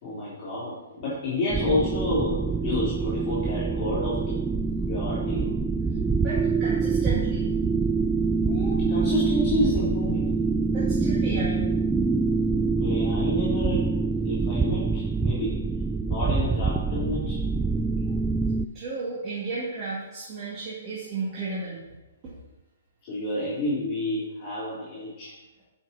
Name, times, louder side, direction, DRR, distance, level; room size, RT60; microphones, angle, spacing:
voice 1, 0.0-4.4 4.9-5.6 8.4-10.3 12.5-13.9 14.2-15.6 16.0-17.4 23.0-25.3, left 2 dB, 30° left, -10 dB, 3.7 m, -30 dB
sound 1, 1.5-18.7, right 4 dB, 5° right, 0.3 m, -25 dB
voice 2, 6.2-7.5 10.7-11.7 18.7-21.8, right 3 dB, 25° right, -8 dB, 2.4 m, -33 dB
11.5 x 6.1 x 4.3 m, 1.1 s
hypercardioid pair, 155°, 0 cm